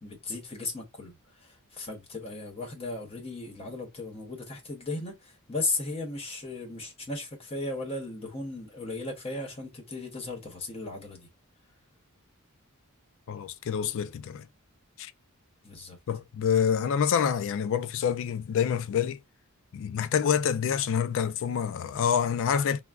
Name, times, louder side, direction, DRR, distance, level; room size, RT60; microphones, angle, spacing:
voice 1, 0.0-11.3 15.6-16.0, left 2 dB, 25° left, 0.7 m, -36 dB
voice 2, 13.3-14.5 15.0-15.1 16.1-19.2 19.7-22.8, left 7 dB, 60° left, 0.3 m, -27 dB
3.4 x 2.0 x 2.3 m
head